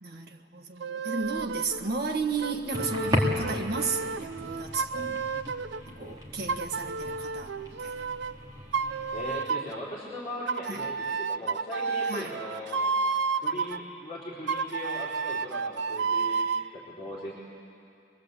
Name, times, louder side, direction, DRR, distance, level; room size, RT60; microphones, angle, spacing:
voice 1, 0.0-5.2 5.8-7.5 7.8-8.0 10.7-10.9 12.1-12.4, right 3 dB, 60° right, 3 dB, 1.5 m, -33 dB
sound 1, 0.8-1.8 2.4-5.8 6.5-8.4 8.7-9.8 10.5-13.8 14.5-16.7, right 5 dB, 80° right, 0.5 m, -31 dB
sound 2, 1.2-9.4, equal, 25° right, 2.8 m, -36 dB
voice 2, 9.1-12.9 13.4-16.5 16.7-17.3, left 1 dB, 25° left, -10 dB, 3.8 m, -39 dB
24.0 x 21.5 x 8.3 m, 2.6 s
head